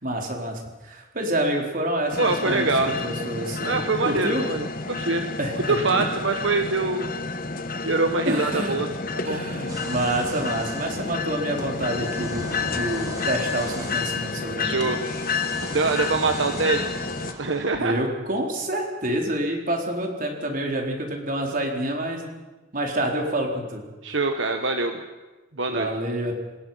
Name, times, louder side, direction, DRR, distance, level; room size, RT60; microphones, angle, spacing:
voice 1, 0.0-2.7 3.0-3.8 4.0-4.4 5.4-5.8 8.3-8.8 9.2-15.0 15.8-16.1 17.7-22.3 22.7-23.8 25.7-26.3, right 1 dB, 45° right, 1 dB, 4.0 m, -28 dB
sound 1, 2.1-17.3, left 4 dB, 45° left, 1.2 m, -30 dB
voice 2, 2.2-2.9 3.6-5.2 5.5-7.1 7.8-8.9 9.1-9.4 14.6-15.0 15.6-16.9 17.2-18.0 24.0-25.0 25.6-25.9, right 3 dB, 75° right, 5 dB, 1.4 m, -24 dB
sound 2, 9.7-18.0, right 2 dB, 20° right, 2.9 m, -40 dB
27.5 x 20.0 x 5.7 m, 1.2 s
head